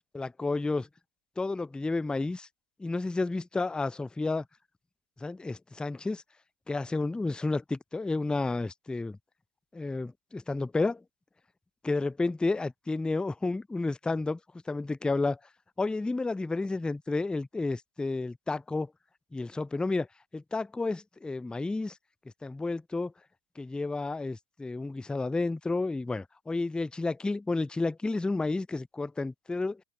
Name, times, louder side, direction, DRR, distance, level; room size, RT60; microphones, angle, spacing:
voice 1, 0.1-0.9 1.4-2.5 2.8-4.4 5.2-6.2 6.7-9.2 9.7-11.0 11.8-14.4 14.7-15.4 15.8-18.9 19.3-20.1 20.3-22.0 22.4-23.1 23.6-29.8, left 3 dB, 5° left, 0.4 m, -31 dB
hypercardioid pair, 100°, 31 cm